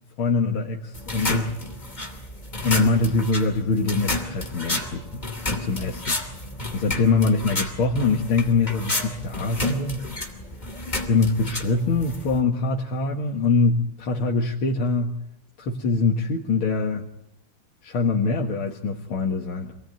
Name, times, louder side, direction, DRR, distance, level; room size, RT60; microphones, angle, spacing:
voice 1, 0.2-1.5 2.6-5.2 5.5-6.2 6.7-10.0 11.1-15.2 15.6-17.1 17.8-19.7, left 3 dB, 80° left, 0 dB, 2.7 m, -23 dB
sound 1, 0.9-12.4, left 2 dB, 20° left, 2.9 m, -31 dB
27.0 x 19.0 x 9.3 m, 0.77 s
omnidirectional pair, 2.3 m